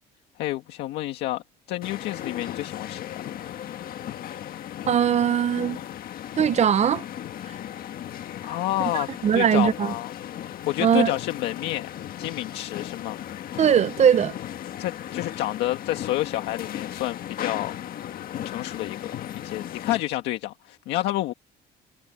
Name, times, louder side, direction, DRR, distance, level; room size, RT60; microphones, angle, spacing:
voice 1, 0.4-1.4 1.7-3.3 8.4-10.1 10.7-11.9 12.2-13.2 14.8-17.7 18.3-19.1 19.4-21.3, left 16 dB, 85° left, 1.8 m, -29 dB
sound 1, 1.8-20.0, left 11 dB, 60° left, 1.6 m, -36 dB
voice 2, 4.9-5.8 6.4-7.0 8.9-9.9 10.8-11.1 13.6-14.3, right 8 dB, 40° right, 0.8 m, -20 dB
cardioid pair, 110°, 17 cm